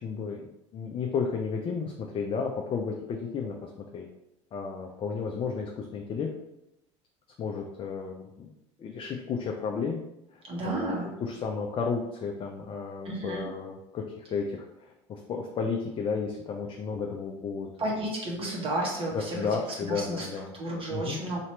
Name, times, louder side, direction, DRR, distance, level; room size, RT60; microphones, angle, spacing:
voice 1, 0.0-4.1 4.5-6.3 7.4-8.5 8.8-10.0 10.3-17.9 19.1-20.5 20.9-21.2, left 5 dB, 35° left, 1 dB, 0.5 m, -33 dB
voice 2, 10.4-11.1 13.0-13.4 17.8-19.5 19.9-20.3 20.5-21.4, right 1 dB, 35° right, -3 dB, 1.4 m, -32 dB
3.0 x 2.8 x 4.4 m, 0.87 s
hypercardioid pair, 85°, 16 cm